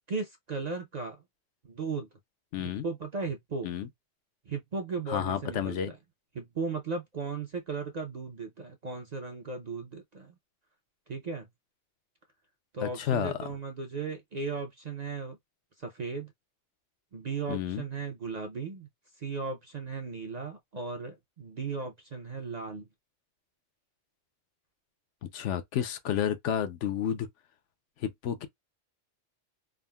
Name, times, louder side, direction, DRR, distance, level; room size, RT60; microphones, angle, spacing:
voice 1, 0.1-1.2 1.6-2.1 2.6-3.7 4.5-6.0 6.3-10.4 11.1-11.5 12.7-15.4 15.8-16.3 17.1-18.9 19.2-22.9, right 4 dB, 50° right, 0.5 m, -36 dB
voice 2, 2.5-2.9 3.6-3.9 5.1-5.9 12.8-13.3 17.5-17.8 25.2-27.3 28.0-28.5, left 9 dB, 80° left, 0.9 m, -31 dB
3.6 x 2.0 x 2.2 m
omnidirectional pair, 1.2 m